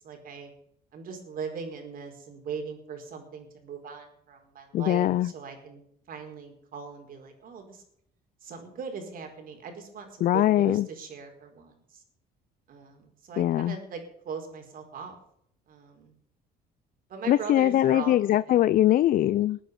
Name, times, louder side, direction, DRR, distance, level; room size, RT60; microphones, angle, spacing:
voice 1, 0.0-0.5 0.9-5.8 6.1-7.8 8.4-12.0 12.7-15.2 15.7-16.1 17.1-18.6, right 5 dB, 55° right, 4 dB, 4.7 m, -40 dB
voice 2, 4.7-5.3 10.2-10.9 13.4-13.8 17.3-19.6, left 13 dB, 55° left, 16 dB, 0.5 m, -22 dB
22.0 x 9.4 x 5.4 m, 0.69 s
cardioid pair, 110°, 17 cm